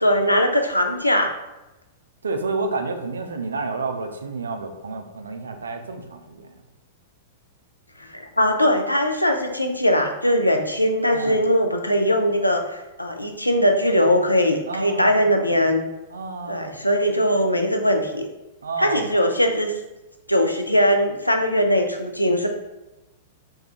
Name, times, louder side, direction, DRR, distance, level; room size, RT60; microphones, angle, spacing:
voice 1, 0.0-1.3 8.1-15.8 16.5-18.3 18.8-19.7 20.3-22.5, equal, 90° left, 4 dB, 0.4 m, -20 dB
voice 2, 2.2-6.5 11.1-11.4 14.7-15.3 16.1-16.8 18.6-19.0, right 3 dB, 70° right, 5 dB, 0.4 m, -30 dB
2.7 x 2.3 x 3.5 m, 1.0 s
figure-of-eight pair, 100°, 0 cm